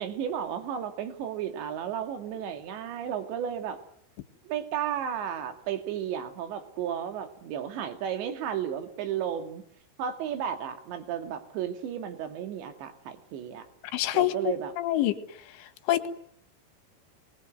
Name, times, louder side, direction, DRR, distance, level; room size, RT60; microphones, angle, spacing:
voice 1, 0.0-3.8 4.4-9.6 10.0-13.6 14.1-14.7, right 9 dB, 65° right, 8 dB, 4.5 m, -33 dB
voice 2, 13.9-14.3 14.8-15.2 15.6-16.1, left 14 dB, 75° left, 10 dB, 4.0 m, -26 dB
28.5 x 21.5 x 8.0 m, 0.65 s
omnidirectional pair, 5.6 m